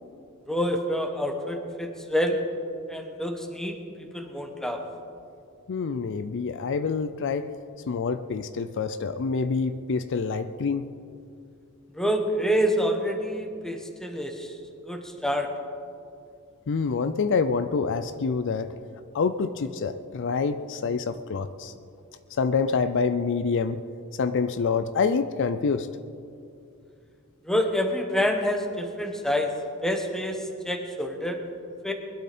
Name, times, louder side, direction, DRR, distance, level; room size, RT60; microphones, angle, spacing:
voice 1, 0.5-2.4 2.9-4.8 11.9-14.5 14.9-15.5 27.5-29.5 29.8-30.4 30.6-31.4 31.8-31.9, equal, ahead, 4 dB, 1.2 m, -27 dB
voice 2, 5.7-7.5 7.9-10.9 16.7-18.7 19.1-21.7 22.4-23.8 24.2-25.9, left 5 dB, 55° left, 11 dB, 0.5 m, -26 dB
21.0 x 12.0 x 4.3 m, 2.6 s
head